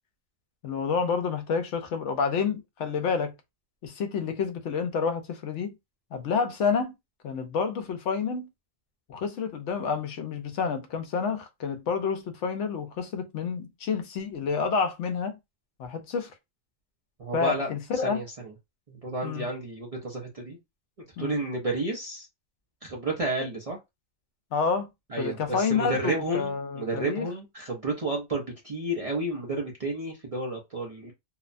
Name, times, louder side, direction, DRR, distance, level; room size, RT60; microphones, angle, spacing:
voice 1, 0.6-3.3 3.8-5.8 6.1-6.9 7.2-8.5 9.1-15.4 15.8-16.3 17.3-18.2 19.2-19.5 21.2-21.4 24.5-24.9 25.2-27.3, left 5 dB, 70° left, 0.9 m, -29 dB
voice 2, 17.2-17.7 18.0-18.2 18.9-20.6 21.2-22.3 22.8-23.8 25.1-31.1, right 2 dB, 40° right, 0.5 m, -31 dB
2.8 x 2.1 x 2.5 m
omnidirectional pair, 1.3 m